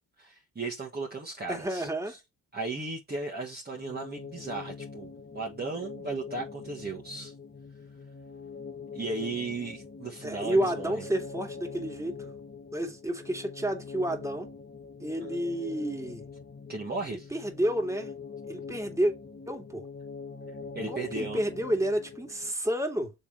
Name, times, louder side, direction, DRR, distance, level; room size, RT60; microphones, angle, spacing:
voice 1, 0.2-1.9 2.5-7.3 8.9-11.0 16.7-17.3 20.7-21.4, right 3 dB, 25° right, 1.7 m, -36 dB
voice 2, 1.5-2.2 10.2-12.3 12.7-14.5 15.0-16.2 17.1-18.1 18.5-19.1 19.5-19.9 20.9-23.1, right 1 dB, 5° right, 2.5 m, -30 dB
sound 1, 3.7-22.5, left 5 dB, 25° left, 1.5 m, -43 dB
7.0 x 3.7 x 4.5 m
cardioid pair, 75°, 41 cm